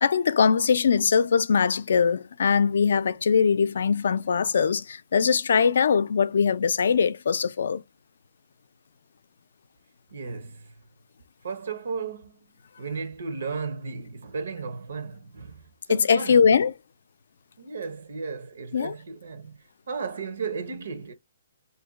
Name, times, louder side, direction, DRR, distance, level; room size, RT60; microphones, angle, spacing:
voice 1, 0.0-7.8 15.9-16.7 18.7-18.9, left 6 dB, 70° left, 0.4 m, -21 dB
voice 2, 10.1-10.8 11.4-16.5 17.6-21.1, right 5 dB, 75° right, 0.7 m, -35 dB
2.6 x 2.2 x 3.7 m
hypercardioid pair, 155°, 0 cm